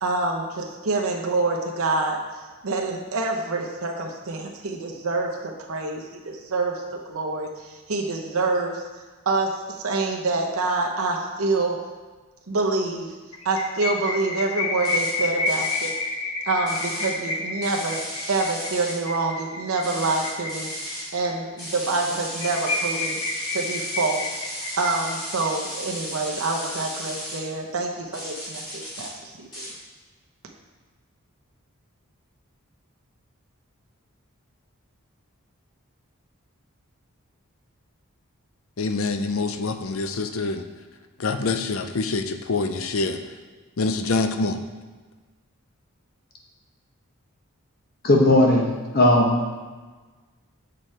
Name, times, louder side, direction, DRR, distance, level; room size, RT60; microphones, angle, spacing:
voice 1, 0.0-2.2 2.6-6.8 7.1-8.8 9.3-11.8 12.5-13.2 13.4-15.9 16.4-18.0 18.3-23.2 23.5-29.7, right 3 dB, 75° right, 0 dB, 0.8 m, -26 dB
sound 1, 13.3-21.3 21.6-21.7 22.0-22.1 22.4-25.5, left 3 dB, 90° left, 1.0 m, -29 dB
sound 2, 14.8-15.1 15.5-15.9 16.7-17.1 17.6-19.0 19.8-21.1 21.6-27.4 28.1-29.1 29.5-29.7, equal, 20° left, 2.5 m, -35 dB
voice 2, 38.8-40.7 41.2-43.2 43.8-44.6, left 3 dB, 70° left, 7 dB, 0.5 m, -25 dB
voice 3, 48.0-48.7 48.9-49.5, left 1 dB, 45° left, 0 dB, 1.1 m, -17 dB
7.8 x 5.1 x 4.3 m, 1.3 s
head